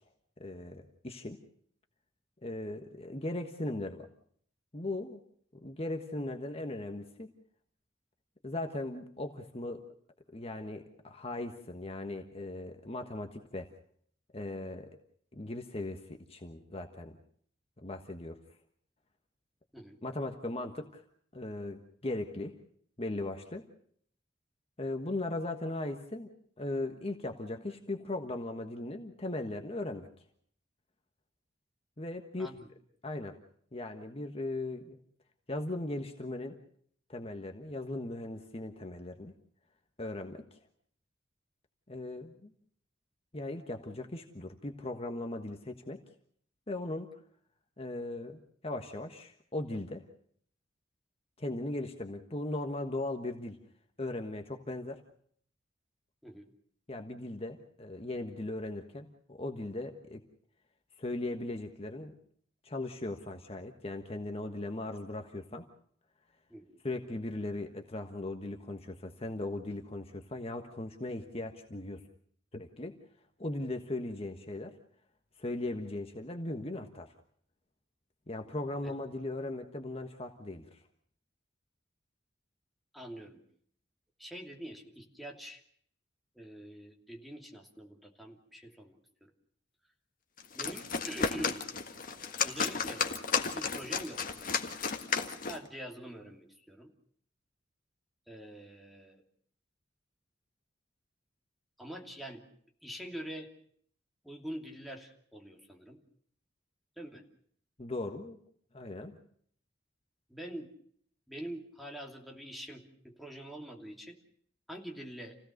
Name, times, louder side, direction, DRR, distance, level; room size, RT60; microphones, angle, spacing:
voice 1, 0.4-1.4 2.4-4.1 4.7-5.2 5.5-7.3 8.4-9.9 10.3-13.7 14.3-14.9 15.3-17.2 17.8-18.4 20.0-21.0 21.3-22.5 23.0-23.7 24.8-26.3 26.6-30.1 32.0-32.5 33.0-33.4 33.7-35.0 35.5-36.6 37.1-39.3 40.0-40.6 41.9-42.5 43.3-46.0 46.7-47.2 47.8-50.0 51.4-53.6 54.0-55.0 56.9-60.2 61.0-62.1 62.6-65.6 66.8-72.0 72.5-73.0 73.4-74.7 75.4-77.1 78.3-80.8 107.8-108.4 108.7-109.2, left 2 dB, 30° left, 5 dB, 1.4 m, -38 dB
voice 2, 82.9-83.4 84.2-85.6 86.3-89.3 90.5-91.6 92.4-93.1 93.5-94.2 95.4-96.9 98.3-99.2 101.8-102.5 102.8-103.5 104.2-106.0 107.0-107.2 110.3-110.7 111.3-114.2 114.7-115.4, equal, ahead, 1 dB, 2.8 m, -45 dB
sound 1, 90.4-95.7, left 5 dB, 50° left, 1.6 m, -33 dB
28.5 x 17.0 x 6.6 m, 0.62 s
head